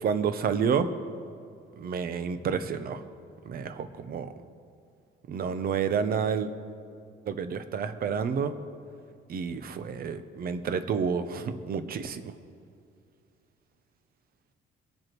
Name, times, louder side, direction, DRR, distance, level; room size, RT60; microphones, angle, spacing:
voice 1, 0.0-0.9 1.8-3.0 3.5-4.3 5.3-6.5 7.3-8.5 9.3-12.2, right 6 dB, 50° right, 11 dB, 0.7 m, -29 dB
23.5 x 7.9 x 3.0 m, 2.4 s
cardioid pair, 135°, 20 cm